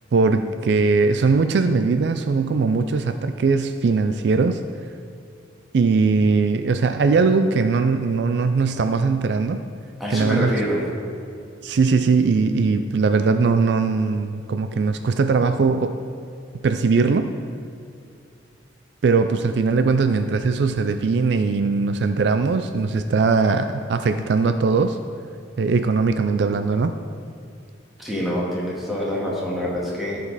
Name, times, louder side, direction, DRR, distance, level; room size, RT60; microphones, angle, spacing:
voice 1, 0.1-4.6 5.7-9.6 10.1-10.5 11.6-15.9 16.6-17.4 19.0-25.0 25.6-27.0, right 4 dB, 65° right, 8 dB, 0.4 m, -20 dB
voice 2, 10.0-10.8 28.0-30.2, equal, ahead, -6 dB, 1.8 m, -25 dB
14.0 x 5.2 x 4.1 m, 2.5 s
head